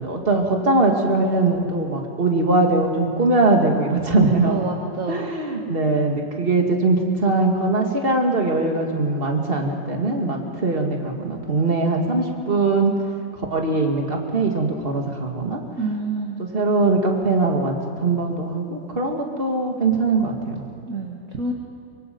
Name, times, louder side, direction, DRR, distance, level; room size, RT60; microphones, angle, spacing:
voice 1, 0.0-4.6 5.1-12.9 13.3-15.6 16.4-20.7, right 3 dB, 30° right, 1 dB, 2.5 m, -21 dB
voice 2, 4.4-5.3 15.8-16.4 20.9-21.5, right 3 dB, 50° right, 0 dB, 1.9 m, -28 dB
24.5 x 24.5 x 5.5 m, 2.6 s
omnidirectional pair, 2.0 m